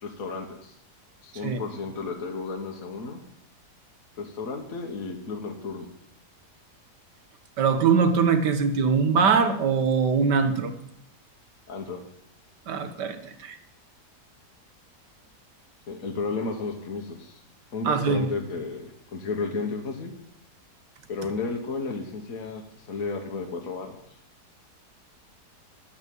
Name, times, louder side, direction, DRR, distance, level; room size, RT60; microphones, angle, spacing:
voice 1, 0.0-0.7 1.2-3.2 4.2-5.9 11.7-12.0 15.9-17.4 17.7-20.1 21.1-23.9, left 4 dB, 55° left, 2 dB, 1.6 m, -33 dB
voice 2, 7.6-10.7 12.7-13.6 17.9-18.3, right 5 dB, 85° right, 8 dB, 1.8 m, -22 dB
10.5 x 8.4 x 7.7 m, 0.74 s
omnidirectional pair, 1.8 m